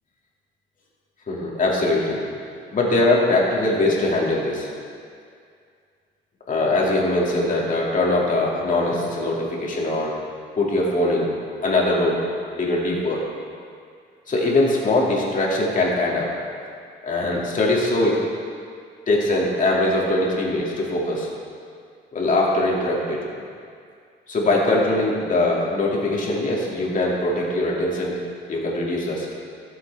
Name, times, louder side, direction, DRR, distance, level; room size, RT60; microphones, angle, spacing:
voice 1, 1.3-2.2 2.7-4.7 6.5-10.1 10.6-11.3 11.6-12.2 12.6-13.2 14.3-16.3 17.0-18.2 19.1-21.3 22.1-23.2 24.3-28.2 28.5-29.3, left 2 dB, 40° left, -4 dB, 2.6 m, -21 dB
16.0 x 7.8 x 3.6 m, 2.2 s
cardioid pair, 90°, 20 cm